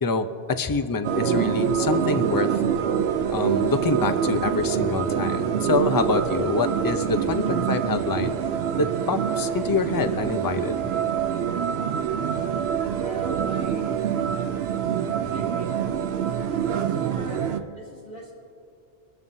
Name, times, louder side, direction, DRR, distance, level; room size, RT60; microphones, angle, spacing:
voice 1, 0.0-2.5 3.3-8.4 8.8-10.9 12.2-12.3, left 4 dB, 25° left, 9 dB, 0.5 m, -26 dB
sound 1, 1.0-17.6, right 8 dB, 75° right, 0.9 m, -25 dB
voice 2, 12.9-14.0 15.3-15.8 16.6-18.3, right 1 dB, 75° left, -6 dB, 3.7 m, -39 dB
24.5 x 13.0 x 2.7 m, 2.7 s
omnidirectional pair, 1.1 m